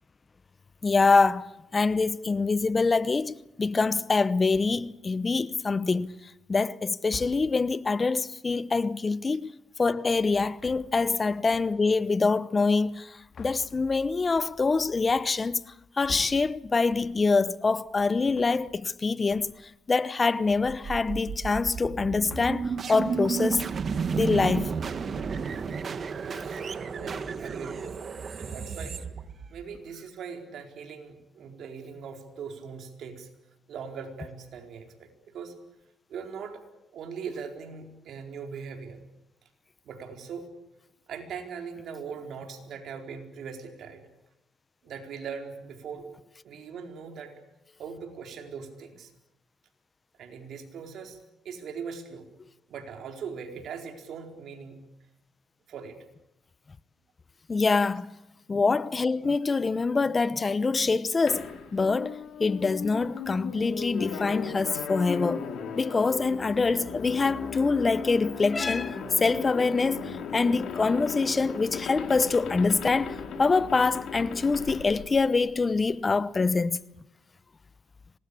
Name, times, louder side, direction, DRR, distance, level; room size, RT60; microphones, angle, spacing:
voice 1, 0.8-1.5 1.7-6.1 6.5-9.5 9.8-15.7 16.0-23.6 24.2-24.7 57.5-58.1 58.5-65.4 65.8-76.8, left 4 dB, 30° left, 0.8 m, -25 dB
sound 1, 4.5-5.0 5.8-6.3 7.0-7.8 10.4-11.2 11.5-12.0 12.9-17.4 17.8-19.0 19.3-19.8 20.1-21.7 21.9-23.1, left 6 dB, 50° left, 2.7 m, -48 dB
sound 2, 20.6-29.8, right 5 dB, 45° right, 1.6 m, -32 dB
voice 2, 26.2-26.6 26.9-28.0 28.3-29.0 29.5-33.3 33.7-35.5 36.1-36.6 36.9-39.0 39.8-40.5 41.1-44.0 44.8-46.1 46.4-47.3 47.8-49.1 50.2-51.2 51.4-52.3 52.7-54.8 55.7-56.0, right 6 dB, 70° right, 4.4 m, -40 dB
sound 3, 61.3-75.8, left 6 dB, 70° left, 4.7 m, -37 dB
25.5 x 20.0 x 8.5 m
cardioid pair, 90°, 0 cm